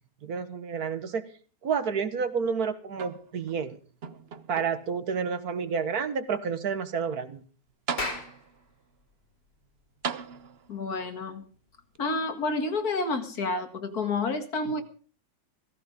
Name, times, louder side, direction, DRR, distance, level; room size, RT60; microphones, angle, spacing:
voice 1, 0.2-1.2 1.6-3.8 4.5-7.4, right 6 dB, 65° right, 11 dB, 1.8 m, -30 dB
sound 1, 2.9-3.6 4.0-5.0 5.7-5.8 7.4-7.5 7.9-8.6 10.0-10.9 12.0-12.1, right 6 dB, 45° right, 1.0 m, -37 dB
Clapping, 7.8-12.6, left 2 dB, 85° left, 4.0 m, -40 dB
voice 2, 10.7-11.4 12.0-14.8, left 3 dB, 65° left, 7 dB, 2.4 m, -29 dB
16.0 x 15.0 x 5.2 m, 0.41 s
omnidirectional pair, 1.7 m